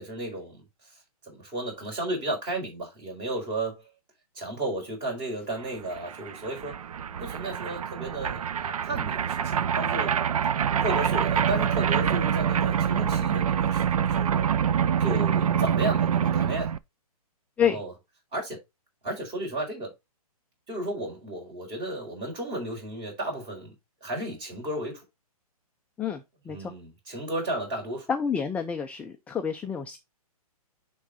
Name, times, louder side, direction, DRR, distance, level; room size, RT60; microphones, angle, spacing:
voice 1, 0.0-3.9 4.3-6.8 7.2-10.2 10.8-14.5 15.0-16.7 17.6-17.9 18.3-18.6 19.0-19.9 20.7-23.7 24.0-25.0 26.5-28.1, right 1 dB, 25° right, 4.6 m, -34 dB
sound 1, 5.6-5.7 5.9-16.8, right 8 dB, 70° right, 0.6 m, -26 dB
voice 2, 26.0-26.7 28.1-30.0, left 7 dB, 5° left, 0.4 m, -28 dB
10.0 x 3.8 x 4.0 m
hypercardioid pair, 130°, 19 cm